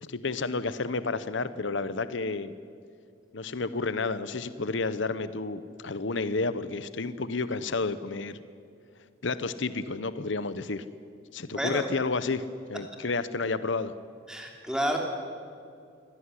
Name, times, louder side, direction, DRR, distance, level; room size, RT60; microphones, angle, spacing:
voice 1, 0.0-2.5 3.3-8.4 9.2-10.8 11.3-12.4 12.7-13.9, left 3 dB, 70° left, 14 dB, 0.9 m, -31 dB
voice 2, 11.5-11.8 14.3-15.0, equal, 5° right, 1 dB, 3.1 m, -30 dB
24.0 x 17.5 x 9.9 m, 2.3 s
head